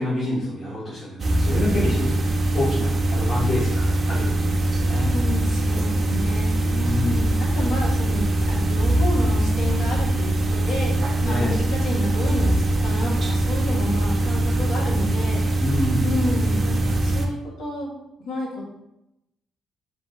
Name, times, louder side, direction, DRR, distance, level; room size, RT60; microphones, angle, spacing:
voice 1, 0.0-5.1 6.6-7.3 11.2-11.7 15.6-16.1, left 1 dB, 45° left, -9 dB, 1.6 m, -27 dB
sound 1, 1.2-17.3, right 1 dB, 40° right, 0.6 m, -22 dB
voice 2, 5.1-6.5 7.1-15.6 16.0-17.9 18.2-18.6, left 1 dB, 85° left, -3 dB, 1.5 m, -30 dB
4.1 x 3.9 x 3.2 m, 0.87 s
cardioid pair, 90°, 0 cm